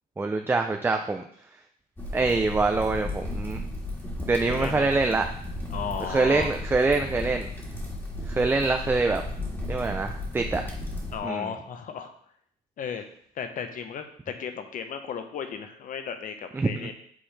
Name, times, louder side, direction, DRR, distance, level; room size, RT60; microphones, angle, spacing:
voice 1, 0.2-1.2 2.1-3.6 4.3-5.3 6.1-7.5 8.3-9.2 9.7-10.6 11.2-11.5 16.5-16.9, right 3 dB, 15° right, 5 dB, 0.4 m, -25 dB
sound 1, 2.0-11.2, left 1 dB, 15° left, 1.6 m, -34 dB
voice 2, 4.5-4.9 5.7-6.5 11.1-12.1 12.8-13.0 13.4-16.9, left 7 dB, 50° left, 7 dB, 0.9 m, -35 dB
8.5 x 3.8 x 3.3 m, 0.63 s
cardioid pair, 110°, 17 cm